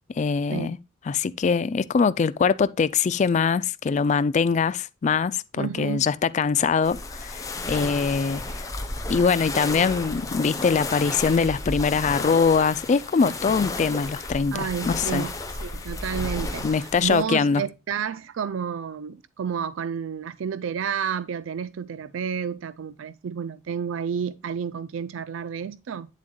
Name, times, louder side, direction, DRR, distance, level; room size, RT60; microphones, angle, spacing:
voice 1, 0.2-0.8 1.1-8.7 9.1-15.3 16.6-17.6, left 5 dB, 35° left, 0.3 m, -23 dB
voice 2, 5.6-6.1 14.5-15.4 15.6-26.1, right 7 dB, 75° right, 0.4 m, -31 dB
sound 1, 6.8-17.2, left 2 dB, 15° left, 0.8 m, -33 dB
9.0 x 7.3 x 2.3 m
head